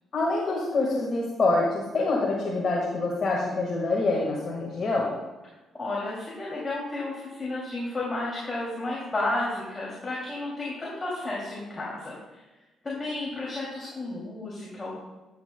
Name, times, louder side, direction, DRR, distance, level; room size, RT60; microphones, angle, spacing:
voice 1, 0.1-5.1, left 3 dB, 50° left, -3 dB, 1.6 m, -26 dB
voice 2, 5.7-12.2 12.8-15.0, left 2 dB, 25° left, -5 dB, 2.7 m, -32 dB
11.5 x 8.7 x 2.2 m, 1.1 s
cardioid pair, 90°, 0 cm